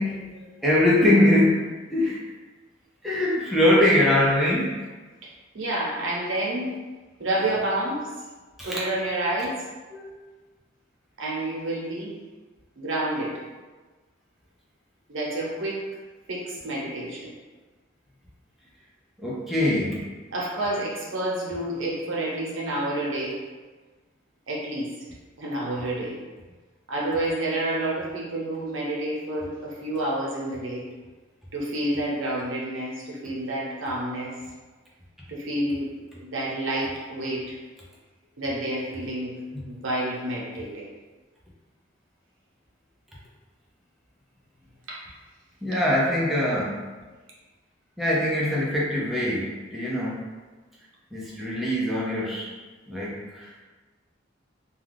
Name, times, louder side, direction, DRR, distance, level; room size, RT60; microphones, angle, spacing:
voice 1, 0.0-1.6 1.9-2.2 3.0-4.7 8.6-8.8 9.9-10.1 19.2-20.0 39.5-39.6 45.6-46.8 48.0-50.2 51.1-52.5 52.9-53.5, left 1 dB, ahead, -7 dB, 0.5 m, -22 dB
voice 2, 5.5-6.7 7.2-8.1 8.6-9.6 11.2-12.1 12.8-13.4 15.1-15.8 16.3-17.3 20.3-23.4 24.5-24.9 25.4-26.2 26.9-30.9 31.5-34.4 35.3-35.9 36.2-37.6 38.4-39.4 39.7-40.9 44.9-45.0, right 1 dB, 90° right, -4 dB, 0.8 m, -29 dB
2.3 x 2.3 x 3.3 m, 1.3 s
head